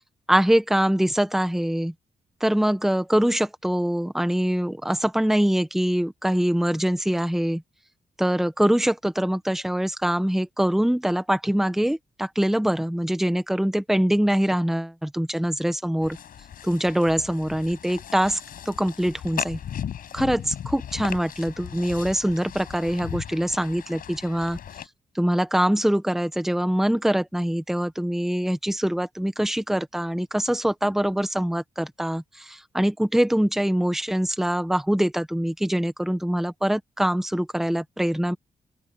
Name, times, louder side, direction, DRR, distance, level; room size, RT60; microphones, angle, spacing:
voice 1, 0.3-1.9 2.4-7.6 8.2-16.2 16.6-18.4 18.6-19.6 20.1-24.6 25.1-38.4, equal, ahead, 1.3 m, -24 dB
sound 1, 16.0-24.9, left 9 dB, 80° left, 5.8 m, -37 dB
open air
cardioid pair, 110°, 15 cm